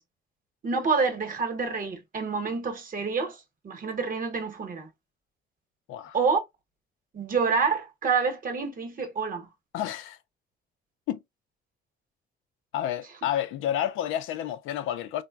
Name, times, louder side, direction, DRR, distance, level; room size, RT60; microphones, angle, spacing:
voice 1, 0.6-4.9 6.1-6.4 7.1-9.5, right 5 dB, 45° right, 0.9 m, -27 dB
voice 2, 9.7-10.2 11.1-11.2 12.7-15.2, left 11 dB, 90° left, 0.4 m, -30 dB
3.2 x 2.0 x 2.3 m
cardioid pair, 90°, 20 cm